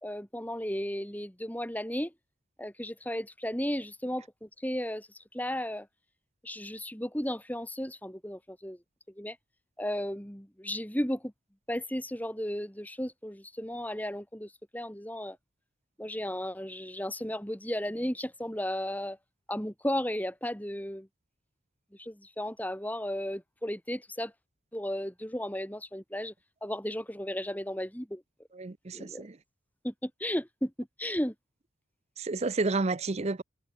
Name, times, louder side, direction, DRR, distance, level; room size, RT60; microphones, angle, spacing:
voice 1, 0.0-2.1 2.6-5.9 6.4-8.8 9.2-9.4 9.8-11.3 11.7-15.4 16.0-19.2 19.5-21.1 22.0-24.3 24.7-26.3 26.6-28.2 28.9-29.2 29.8-31.3, equal, 10° left, 3.8 m, -34 dB
voice 2, 28.5-29.4 32.2-33.4, right 3 dB, 30° right, 0.6 m, -30 dB
head